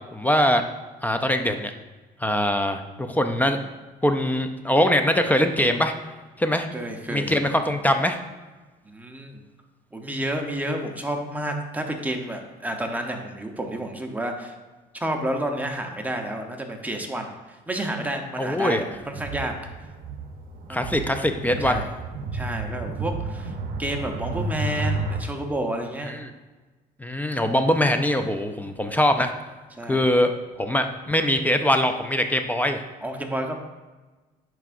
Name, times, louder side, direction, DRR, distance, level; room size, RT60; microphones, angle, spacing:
voice 1, 0.1-0.6 1.0-1.7 2.2-2.8 3.1-3.6 4.0-5.9 6.4-6.7 7.1-8.2 18.4-18.8 20.7-21.8 26.0-26.3 27.0-29.3 29.9-30.3 30.6-32.8, left 1 dB, 10° left, 7 dB, 0.4 m, -22 dB
voice 2, 6.7-7.4 8.9-9.3 9.9-14.5 14.9-17.3 17.7-19.5 20.7-20.9 21.6-21.9 22.3-23.5 23.8-26.2 29.7-30.1 33.0-33.5, right 1 dB, 10° right, 3 dB, 0.8 m, -30 dB
sound 1, 19.0-25.2, right 3 dB, 60° right, 0.8 m, -31 dB
10.5 x 4.6 x 2.5 m, 1.2 s
cardioid pair, 110°, 17 cm